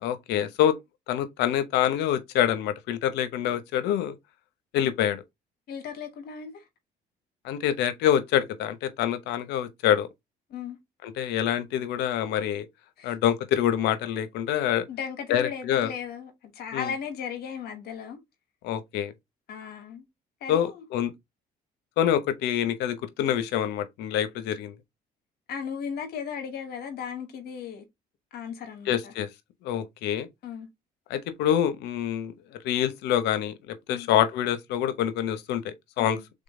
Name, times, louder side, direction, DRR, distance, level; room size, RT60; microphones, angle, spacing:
voice 1, 0.0-0.7 1.1-4.1 4.7-5.2 7.4-10.1 11.2-12.7 13.0-14.9 15.3-15.9 16.7-16.9 18.6-19.1 20.5-21.1 22.0-24.7 28.9-29.3 29.6-30.3 31.1-32.3 32.6-36.2, left 10 dB, 90° left, 0.8 m, -26 dB
voice 2, 5.7-6.6 10.5-10.8 13.0-13.2 14.9-18.2 19.5-20.0 20.4-20.8 25.5-27.8 28.3-29.1 30.4-30.7 33.9-34.1 36.0-36.4, left 7 dB, 70° left, 1.3 m, -36 dB
3.7 x 3.7 x 3.7 m
cardioid pair, 110°, 17 cm